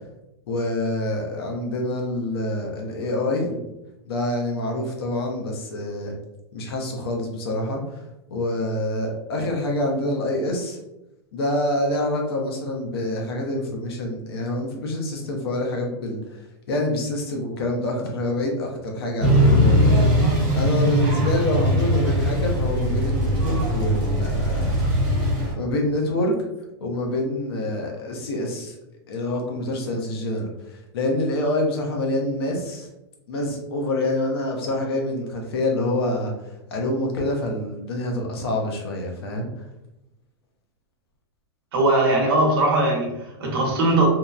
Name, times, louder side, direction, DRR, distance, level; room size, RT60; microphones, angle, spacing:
voice 1, 0.5-3.6 4.1-6.2 6.5-8.0 8.3-10.8 11.3-16.2 16.7-24.8 25.5-26.4 26.8-28.7 29.1-32.9 33.3-39.5, left 1 dB, 65° left, 1 dB, 0.7 m, -26 dB
sound 1, 19.2-25.5, equal, 30° right, 1.0 m, -20 dB
voice 2, 41.7-44.1, right 2 dB, 60° right, -1 dB, 0.9 m, -20 dB
2.7 x 2.0 x 2.3 m, 0.93 s
supercardioid pair, 175°, 14 cm